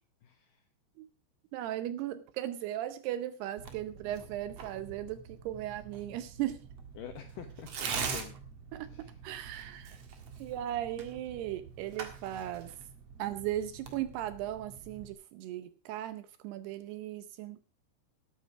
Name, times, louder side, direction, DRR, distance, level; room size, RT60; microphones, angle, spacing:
voice 1, 0.2-0.7 7.0-8.4 8.9-9.2, left 9 dB, 80° left, 7 dB, 1.9 m, -47 dB
voice 2, 1.5-6.6 8.7-10.0 10.4-12.7 13.2-17.6, right 12 dB, 75° right, 12 dB, 2.6 m, -37 dB
Tearing, 3.6-15.1, right 6 dB, 55° right, 1.8 m, -44 dB
13.0 x 9.4 x 4.6 m, 0.34 s
omnidirectional pair, 5.1 m